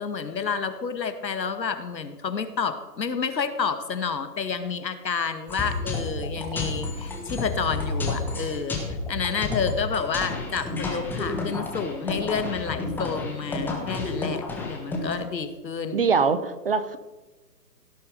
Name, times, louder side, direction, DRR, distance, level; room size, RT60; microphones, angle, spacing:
voice 1, 0.0-16.1, left 5 dB, 80° left, 9 dB, 1.8 m, -30 dB
sound 1, 5.5-15.1, left 3 dB, 5° left, 1.3 m, -31 dB
voice 2, 15.9-17.0, right 5 dB, 35° right, 13 dB, 0.6 m, -23 dB
17.0 x 8.9 x 5.0 m, 1.2 s
hypercardioid pair, 145°, 50 cm